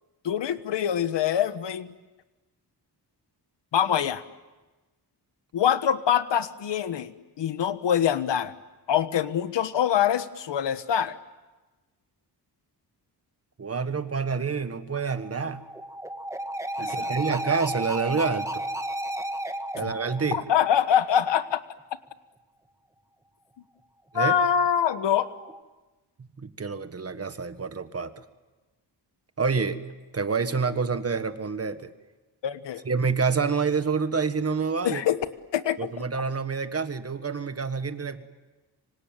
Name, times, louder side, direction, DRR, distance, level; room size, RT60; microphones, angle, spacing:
voice 1, 0.2-1.9 3.7-4.2 5.5-8.5 8.9-11.2 16.8-17.1 19.8-19.9 20.3-21.6 24.1-25.3 32.4-32.8 34.8-35.2 35.5-35.9, left 9 dB, 90° left, 12 dB, 1.4 m, -24 dB
voice 2, 13.6-15.6 16.8-18.6 19.7-20.4 24.1-24.4 26.2-28.2 29.4-29.8 30.1-31.9 32.8-35.0 35.8-38.2, right 5 dB, 35° right, 10 dB, 1.5 m, -28 dB
sound 1, 15.0-21.3 24.8-25.6, right 1 dB, 5° right, 1.5 m, -34 dB
26.0 x 25.0 x 9.1 m, 1.2 s
wide cardioid pair, 125°, 42 cm